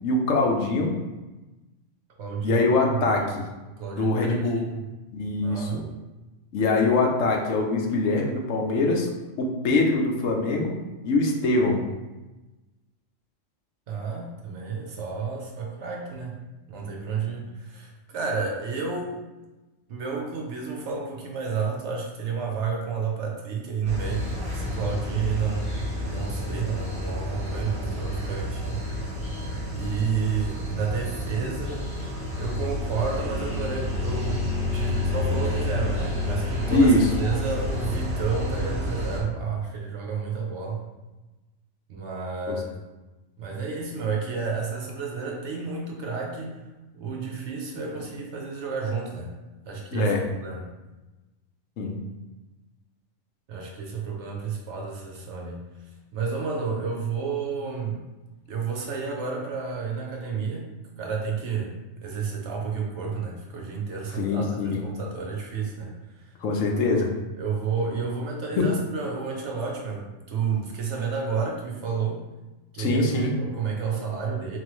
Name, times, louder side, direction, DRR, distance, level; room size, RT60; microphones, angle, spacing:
voice 1, 0.0-0.9 2.4-3.4 3.9-4.6 5.1-5.8 6.5-9.1 9.4-10.8 11.0-11.8 17.3-17.4 36.7-37.1 42.5-42.6 49.9-50.2 51.8-52.0 64.2-64.8 66.4-67.1 68.6-68.7 72.8-73.3, left 2 dB, 75° left, 1 dB, 1.0 m, -23 dB
voice 2, 2.2-3.4 3.7-4.8 5.4-5.9 13.9-16.4 16.7-19.2 19.9-28.8 29.7-32.1 32.4-40.8 41.9-42.7 43.4-46.6 46.9-49.4 49.7-50.7 53.5-55.6 56.1-58.0 58.5-60.7 61.0-66.3 66.9-67.1 67.3-72.2 72.7-74.6, right 5 dB, 65° right, -1 dB, 1.0 m, -31 dB
countryside close from city, 23.8-39.2, left 1 dB, 5° right, 1.0 m, -29 dB
4.2 x 3.2 x 3.1 m, 1.1 s
omnidirectional pair, 1.3 m